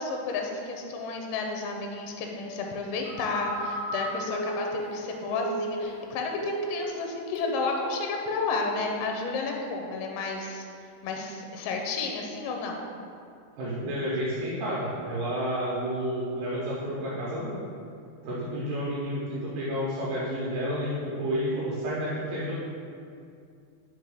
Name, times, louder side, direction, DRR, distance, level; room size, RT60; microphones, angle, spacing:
voice 1, 0.0-10.7 11.0-12.8, left 3 dB, 85° left, 2 dB, 2.6 m, -31 dB
Telephone, 3.0-6.1 6.3-7.0 7.4-7.7, right 1 dB, 70° left, 2.2 m, -34 dB
voice 2, 13.6-17.6 18.2-22.5, equal, 75° right, -7 dB, 2.3 m, -30 dB
5.2 x 4.6 x 4.8 m, 2.4 s
omnidirectional pair, 4.4 m